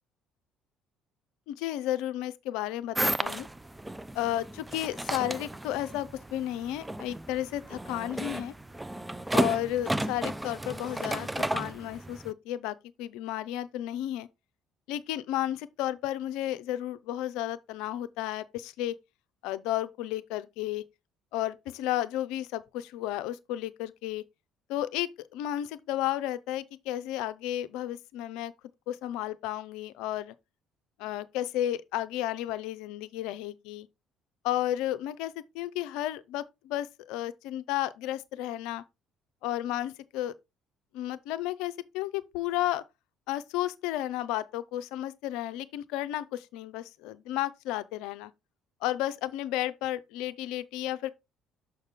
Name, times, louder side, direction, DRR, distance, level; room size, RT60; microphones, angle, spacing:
voice 1, 1.5-3.5 4.1-8.5 9.3-14.3 14.9-19.0 19.4-20.8 21.3-24.2 24.7-28.5 28.9-30.3 31.0-33.9 34.4-38.8 39.4-40.3 40.9-42.8 43.3-48.3 48.8-51.1, left 13 dB, 65° left, 0.5 m, -33 dB
sound 1, 2.9-12.3, right 1 dB, 10° right, 0.4 m, -33 dB
6.4 x 5.8 x 3.5 m
figure-of-eight pair, 50°, 0 cm